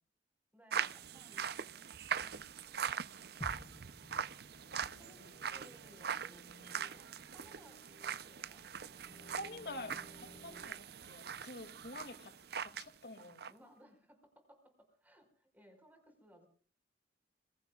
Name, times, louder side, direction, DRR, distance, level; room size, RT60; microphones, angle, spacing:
voice 1, 0.5-1.8 2.2-4.0 4.7-8.6 13.5-16.5, equal, 10° right, 5 dB, 5.0 m, -64 dB
sound 1, 0.7-12.9 13.2-13.5, right 7 dB, 60° right, 0.7 m, -42 dB
sound 2, 3.4-7.3 7.7-7.8, left 1 dB, 15° left, 1.0 m, -54 dB
voice 2, 3.5-3.8 9.4-13.5, left 1 dB, 65° left, 7 dB, 2.5 m, -48 dB
sound 3, 4.5-10.7, equal, 35° left, 3.5 m, -60 dB
27.0 x 22.5 x 2.4 m, 0.42 s
head